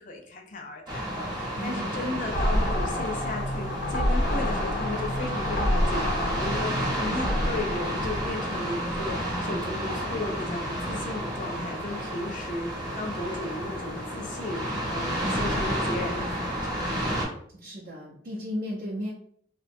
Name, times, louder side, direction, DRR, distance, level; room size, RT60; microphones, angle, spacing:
voice 1, 0.0-14.6 14.9-17.1, left 2 dB, 45° left, 1 dB, 0.4 m, -35 dB
sound 1, 0.9-17.2, equal, 20° right, 0.8 m, -31 dB
voice 2, 1.6-2.2 7.1-7.5 15.2-15.5 17.5-19.1, equal, 55° right, -4 dB, 0.5 m, -35 dB
sound 2, 2.3-9.1, left 1 dB, 80° left, 0.8 m, -28 dB
2.6 x 2.1 x 2.5 m, 0.62 s
head